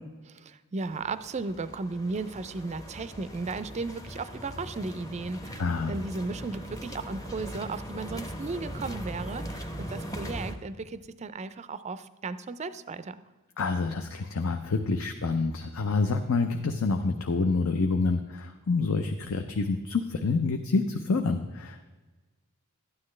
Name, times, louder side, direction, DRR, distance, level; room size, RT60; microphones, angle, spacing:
voice 1, 0.3-13.2, right 3 dB, 30° right, 13 dB, 0.4 m, -35 dB
sound 1, 0.8-10.5, equal, 15° left, 0.8 m, -40 dB
voice 2, 5.6-5.9 13.6-21.9, left 3 dB, 65° left, 6 dB, 0.6 m, -27 dB
12.5 x 9.5 x 3.2 m, 1.3 s
head